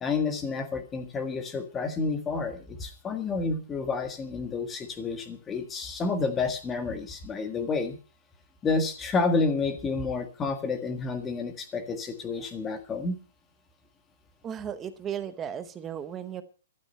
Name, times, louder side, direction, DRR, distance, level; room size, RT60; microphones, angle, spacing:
voice 1, 0.0-8.0 8.6-13.1, left 4 dB, 10° left, 8 dB, 1.6 m, -30 dB
voice 2, 14.4-16.4, right 9 dB, 10° right, 12 dB, 0.9 m, -35 dB
14.0 x 12.5 x 5.5 m, 0.35 s
hypercardioid pair, 180°, 0 cm